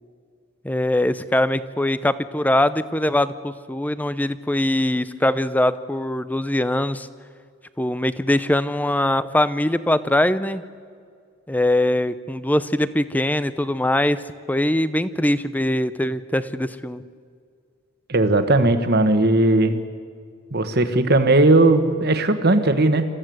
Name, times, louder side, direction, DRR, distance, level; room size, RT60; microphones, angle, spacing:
voice 1, 0.6-7.1 7.8-10.6 11.5-14.2 14.5-17.0, left 1 dB, 10° left, 14 dB, 0.6 m, -22 dB
voice 2, 18.1-19.8 20.5-23.0, right 2 dB, 50° right, 8 dB, 1.5 m, -17 dB
27.5 x 15.0 x 7.9 m, 2.1 s
head